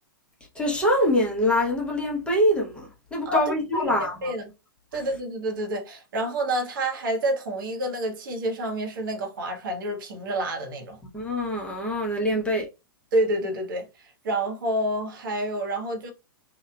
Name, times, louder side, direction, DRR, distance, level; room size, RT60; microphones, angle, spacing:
voice 1, 0.5-4.3 11.1-12.7, equal, 10° left, 0.8 m, -24 dB
voice 2, 3.2-3.9 4.2-4.5 4.9-11.0 13.1-13.9 14.2-16.1, right 1 dB, 65° right, 0.9 m, -28 dB
2.9 x 2.3 x 2.2 m
hypercardioid pair, 110°, 12 cm